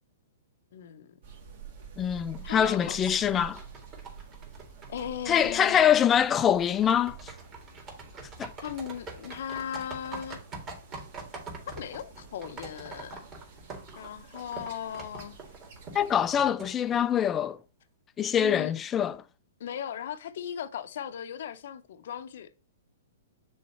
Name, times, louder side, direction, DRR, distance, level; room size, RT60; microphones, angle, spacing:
voice 1, 0.7-1.2 2.4-3.3 4.9-6.1 8.6-10.4 11.7-13.2 14.0-15.4 18.4-18.7 19.6-22.5, left 9 dB, 65° left, 0.7 m, -38 dB
sound 1, 1.2-16.4, right 6 dB, 55° right, 1.7 m, -49 dB
voice 2, 2.0-3.6 5.3-7.2 8.4-8.5 15.9-17.6 18.2-19.1, left 9 dB, 20° left, 0.4 m, -24 dB
sound 2, 2.3-17.3, right 3 dB, 25° right, 2.2 m, -45 dB
6.4 x 3.6 x 4.3 m
hypercardioid pair, 135°, 0 cm